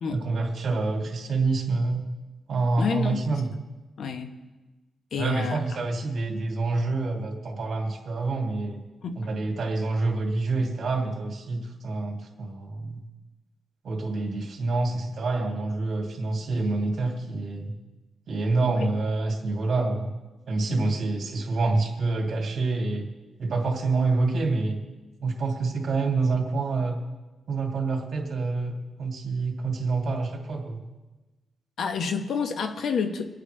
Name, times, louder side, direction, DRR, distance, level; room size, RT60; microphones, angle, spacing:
voice 1, 0.1-2.1 2.5-3.5 5.2-8.8 9.2-13.0 13.8-17.7 18.3-20.1 20.5-23.1 23.4-24.8 25.2-27.0 27.5-30.8, right 3 dB, 55° right, 0 dB, 2.6 m, -27 dB
voice 2, 2.8-3.4 4.0-4.3 5.1-5.6 9.0-9.2 18.8-18.9 20.7-20.9 31.8-33.3, left 5 dB, 70° left, 7 dB, 1.1 m, -29 dB
25.0 x 9.0 x 3.3 m, 1.2 s
wide cardioid pair, 135°, 0 cm